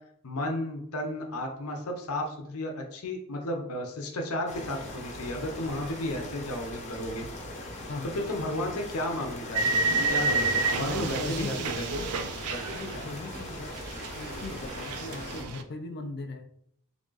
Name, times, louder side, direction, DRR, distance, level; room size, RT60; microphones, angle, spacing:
voice 1, 0.2-7.2 8.1-11.8 12.5-12.6 12.9-13.0, left 1 dB, 75° left, 2 dB, 0.8 m, -33 dB
sound 1, 4.5-15.4, left 1 dB, 30° left, 0.8 m, -40 dB
sound 2, 9.5-13.5 13.7-15.6, right 3 dB, 85° right, 0.4 m, -29 dB
voice 2, 10.8-12.2 12.7-13.8 14.2-16.6, left 3 dB, 50° left, 7 dB, 0.4 m, -39 dB
3.5 x 2.5 x 3.9 m, 0.70 s
head